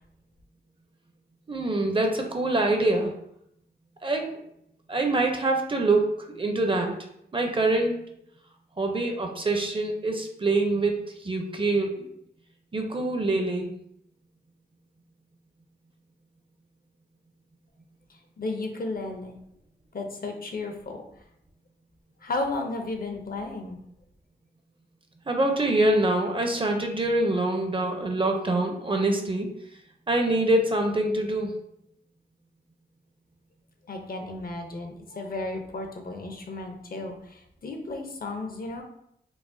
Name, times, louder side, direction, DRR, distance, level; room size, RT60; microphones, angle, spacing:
voice 1, 1.5-3.1 4.0-4.4 4.9-6.1 6.3-6.9 7.3-8.0 8.8-12.1 12.7-13.7 25.3-29.5 30.1-31.5, right 2 dB, 30° right, 3 dB, 0.5 m, -25 dB
voice 2, 18.1-19.4 19.9-21.0 22.2-23.8 33.9-38.8, left 2 dB, 55° left, 3 dB, 0.5 m, -34 dB
4.7 x 2.0 x 2.6 m, 0.74 s
wide cardioid pair, 120°, 18 cm